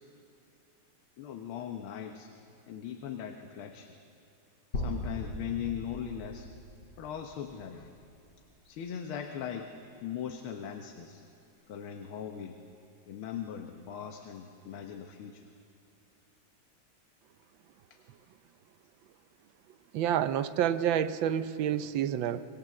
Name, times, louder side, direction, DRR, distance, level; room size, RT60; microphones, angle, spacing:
voice 1, 1.2-2.3 2.7-3.9 4.7-6.5 7.0-7.9 8.7-9.7 10.0-11.2 11.7-12.6 13.1-15.4, left 9 dB, 85° left, 5 dB, 1.9 m, -39 dB
sound 1, 4.7-8.7, left 1 dB, 60° left, 5.1 m, -40 dB
voice 2, 19.9-22.5, right 10 dB, 70° right, 13 dB, 1.4 m, -28 dB
26.0 x 19.5 x 7.6 m, 2.6 s
omnidirectional pair, 2.3 m